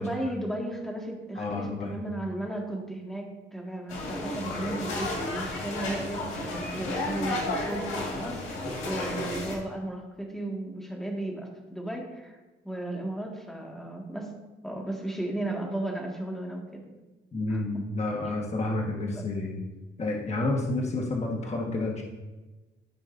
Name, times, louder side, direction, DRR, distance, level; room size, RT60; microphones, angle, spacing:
voice 1, 0.0-12.4 12.6-14.3 14.6-16.8 17.5-17.9, right 1 dB, ahead, -1 dB, 1.8 m, -35 dB
voice 2, 1.3-1.9 17.3-19.6 20.0-22.0, left 2 dB, 35° left, -1 dB, 1.5 m, -30 dB
sound 1, 3.9-9.6, left 2 dB, 90° left, 1.9 m, -32 dB
13.0 x 5.1 x 2.6 m, 1.1 s
cardioid pair, 90°, 20 cm